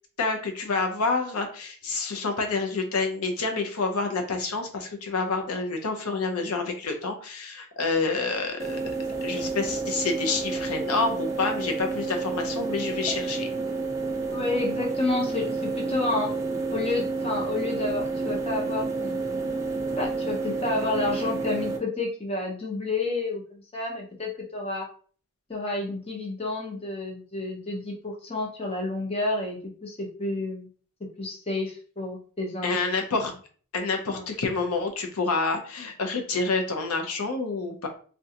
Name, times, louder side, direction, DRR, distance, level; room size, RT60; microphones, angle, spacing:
voice 1, 0.2-8.8 9.2-13.5 32.6-33.3 33.7-37.9, left 3 dB, 80° left, 4 dB, 0.6 m, -28 dB
sound 1, 8.6-21.8, right 3 dB, 15° right, 0.4 m, -30 dB
voice 2, 14.3-16.3 16.7-19.5 20.0-24.9 25.5-30.7 31.0-32.8 33.1-33.2 34.1-34.3, left 2 dB, 25° left, 0 dB, 0.7 m, -30 dB
3.6 x 2.2 x 2.7 m, 0.43 s
head